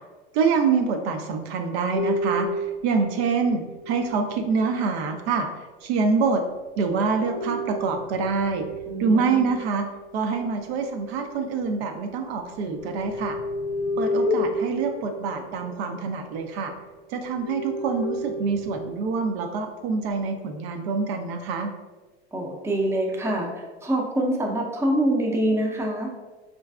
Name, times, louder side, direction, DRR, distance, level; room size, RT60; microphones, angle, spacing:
voice 1, 0.3-5.5 5.8-6.4 6.8-8.7 9.0-9.9 10.1-13.4 14.0-16.7 17.1-21.7, right 5 dB, 65° right, 5 dB, 0.5 m, -25 dB
sound 1, 1.9-5.2 6.8-11.9 12.3-16.8 17.2-19.0 19.7-20.2, left 1 dB, 75° left, 0.5 m, -32 dB
voice 2, 8.9-9.6 22.3-26.1, right 1 dB, 10° right, 0 dB, 0.5 m, -25 dB
4.4 x 2.5 x 2.2 m, 1.3 s
hypercardioid pair, 85°, 34 cm